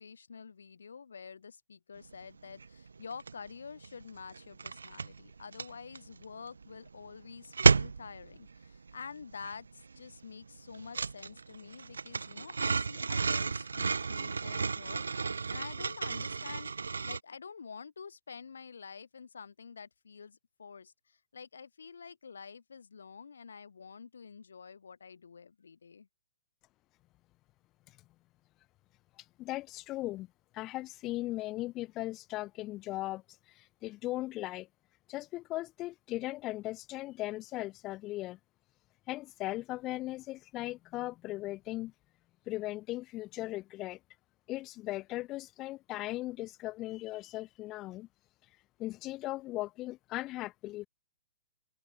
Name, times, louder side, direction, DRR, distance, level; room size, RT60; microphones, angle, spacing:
voice 1, 0.0-26.1, left 6 dB, 65° left, 2.6 m, -48 dB
sound 1, 2.1-2.2 2.5-3.5 3.8-17.2, right 4 dB, 70° right, 0.4 m, -32 dB
voice 2, 29.2-30.3 30.5-34.7 35.1-38.4 39.1-41.9 42.5-44.0 44.5-48.1 48.4-50.9, left 17 dB, 25° left, 0.5 m, -38 dB
figure-of-eight pair, 115°, 0 cm